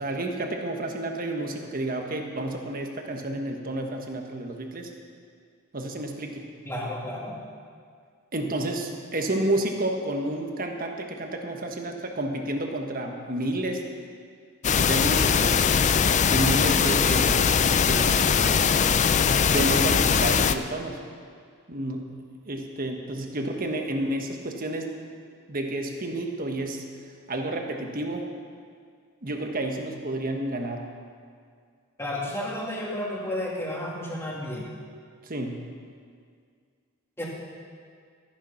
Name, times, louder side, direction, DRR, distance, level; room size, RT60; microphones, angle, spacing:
voice 1, 0.0-4.9 5.7-6.5 8.3-13.8 14.9-15.7 16.3-17.5 17.8-18.3 19.5-21.0 21.7-22.1 22.5-24.9 25.5-26.8 27.3-28.3 29.2-30.9 35.2-35.6, right 1 dB, 40° right, 3 dB, 1.3 m, -30 dB
voice 2, 6.6-7.4 32.0-34.6 37.2-37.3, left 1 dB, 10° left, -4 dB, 2.2 m, -32 dB
sound 1, 14.6-20.6, left 6 dB, 35° left, 0.4 m, -21 dB
13.5 x 10.5 x 5.8 m, 2.1 s
head